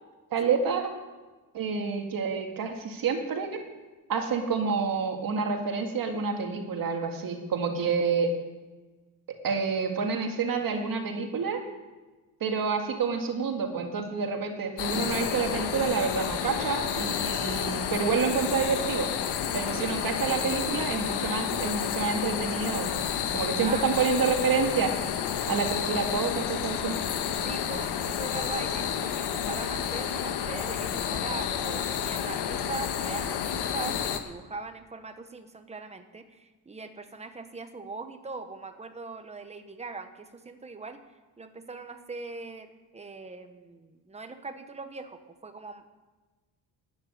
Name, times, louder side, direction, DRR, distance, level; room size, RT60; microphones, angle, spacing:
voice 1, 0.3-0.9 1.5-3.6 4.1-8.3 9.3-11.6 12.4-19.1 19.5-23.0 23.3-24.9 25.5-27.0, right 5 dB, 55° right, 4 dB, 1.9 m, -28 dB
sound 1, 14.8-34.2, left 8 dB, 70° left, 1.4 m, -30 dB
voice 2, 23.6-24.4 27.4-41.0 41.4-45.9, right 3 dB, 15° right, 8 dB, 1.1 m, -40 dB
12.5 x 8.7 x 9.6 m, 1.3 s
cardioid pair, 160°, 41 cm